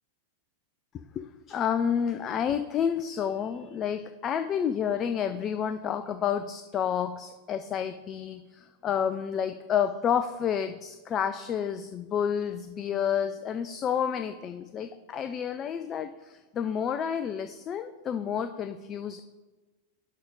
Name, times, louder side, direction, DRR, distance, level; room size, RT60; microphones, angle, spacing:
voice 1, 1.2-19.2, left 8 dB, 30° left, 10 dB, 0.3 m, -30 dB
10.5 x 3.5 x 5.1 m, 1.3 s
figure-of-eight pair, 90°, 0 cm